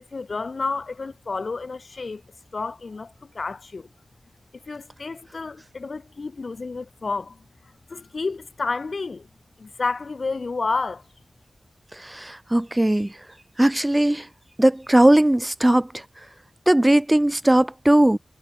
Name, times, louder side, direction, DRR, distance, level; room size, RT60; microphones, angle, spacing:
voice 1, 0.1-2.2 2.5-3.9 4.7-9.3 9.6-11.0, left 4 dB, 70° left, 5.0 m, -30 dB
voice 2, 12.0-13.1 13.6-14.3 14.6-16.0 16.7-18.2, right 1 dB, 20° right, 0.6 m, -18 dB
cardioid pair, 45°, 0 cm